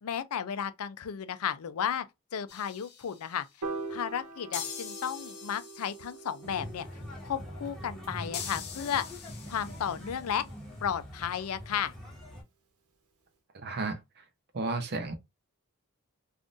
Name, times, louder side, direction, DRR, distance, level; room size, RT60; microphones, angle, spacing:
voice 1, 0.0-2.0 2.3-3.5 3.9-6.9 7.2-9.0 9.5-10.5 10.8-11.9, left 8 dB, 80° left, 0.4 m, -33 dB
sound 1, 2.5-3.4 4.5-6.4 8.3-10.2, left 7 dB, 50° left, 0.8 m, -43 dB
Piano, 3.6-9.9, right 3 dB, 85° right, 0.9 m, -44 dB
sound 2, 6.4-12.4, equal, ahead, 1.4 m, -44 dB
voice 2, 13.5-14.0 14.5-15.1, right 3 dB, 50° right, 0.7 m, -32 dB
3.7 x 2.5 x 2.5 m
head